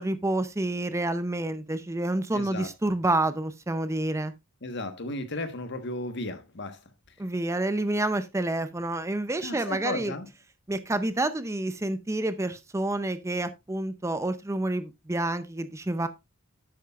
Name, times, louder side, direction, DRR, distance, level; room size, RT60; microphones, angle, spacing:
voice 1, 0.0-4.3 7.2-10.1 10.7-16.1, right 2 dB, 15° right, 0.5 m, -28 dB
voice 2, 2.3-2.7 4.6-6.8 9.4-10.3, left 2 dB, 55° left, 1.3 m, -34 dB
11.5 x 8.7 x 2.4 m
head